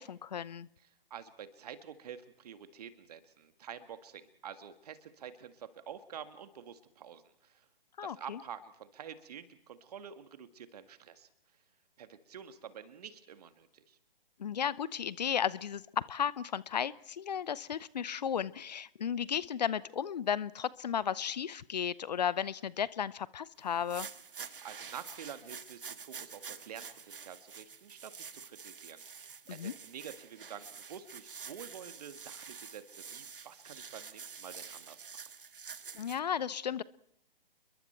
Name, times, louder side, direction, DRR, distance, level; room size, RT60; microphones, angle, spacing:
voice 1, 0.0-0.7 8.0-8.4 14.4-24.1 29.5-29.7 35.9-36.8, left 8 dB, 45° left, 21 dB, 0.7 m, -34 dB
voice 2, 0.8-7.7 8.0-11.3 12.0-14.0 24.6-35.0, right 8 dB, 40° right, 10 dB, 1.9 m, -48 dB
sound 1, 23.7-36.2, right 6 dB, 65° right, 1.5 m, -48 dB
29.5 x 22.5 x 4.5 m, 0.72 s
figure-of-eight pair, 135°, 29 cm